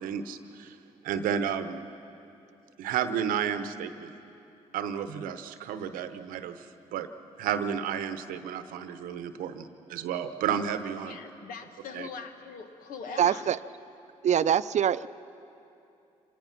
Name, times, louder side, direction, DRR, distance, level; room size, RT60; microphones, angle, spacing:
voice 1, 0.0-0.8 1.0-1.8 2.8-4.1 4.7-6.7 6.9-7.1 7.4-11.2 11.9-12.1, right 8 dB, 85° right, 11 dB, 0.9 m, -32 dB
voice 2, 11.0-13.5, left 5 dB, 80° left, 7 dB, 1.3 m, -42 dB
voice 3, 13.2-13.6 14.2-15.1, right 9 dB, 55° right, 15 dB, 0.5 m, -24 dB
25.0 x 19.0 x 5.9 m, 2.7 s
supercardioid pair, 60°, 14 cm